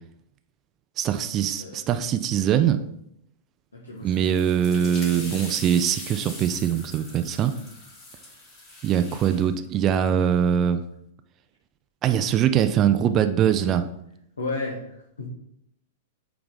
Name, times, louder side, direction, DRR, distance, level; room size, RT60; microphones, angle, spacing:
voice 1, 1.0-2.8 4.0-7.6 8.8-10.8 12.0-13.8, right 9 dB, 30° right, 9 dB, 0.4 m, -22 dB
voice 2, 3.7-5.5 14.4-15.3, left 3 dB, 75° left, -3 dB, 1.3 m, -35 dB
sound 1, 4.1-9.5, left 2 dB, 30° left, 2.8 m, -41 dB
8.6 x 3.4 x 4.0 m, 0.76 s
figure-of-eight pair, 100°, 0 cm